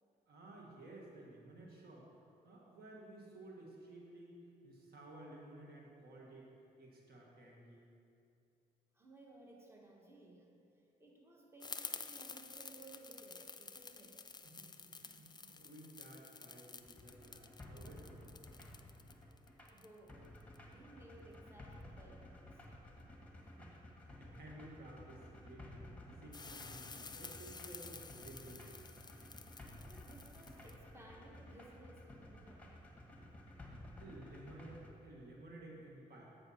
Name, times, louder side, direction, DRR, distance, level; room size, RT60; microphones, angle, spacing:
voice 1, 0.3-2.1 2.4-7.9 14.5-18.4 23.6-23.7 24.0-25.8 26.2-28.9 33.2-33.3 33.7-36.3, right 1 dB, 65° right, -2 dB, 1.5 m, -55 dB
voice 2, 8.9-14.3 19.7-20.3 20.6-22.7 29.6-32.8, right 2 dB, 15° right, -1 dB, 1.2 m, -59 dB
sound 1, 11.6-20.6 26.3-30.7, left 4 dB, 25° left, 0.4 m, -51 dB
sound 2, 16.8-34.9, left 1 dB, 10° left, 1.5 m, -55 dB
8.4 x 5.6 x 4.3 m, 2.5 s
supercardioid pair, 60°, 17 cm